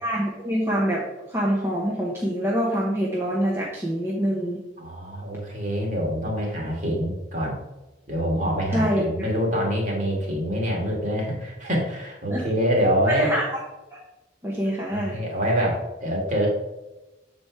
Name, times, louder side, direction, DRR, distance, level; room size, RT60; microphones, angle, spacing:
voice 1, 0.0-1.0 1.3-4.6 8.7-9.0 12.3-12.4 13.1-13.6 14.4-15.2, equal, 15° right, -4 dB, 1.0 m, -25 dB
voice 2, 4.8-7.6 8.1-13.3 14.9-16.5, equal, 40° right, -1 dB, 1.9 m, -25 dB
7.2 x 4.4 x 4.6 m, 1.0 s
head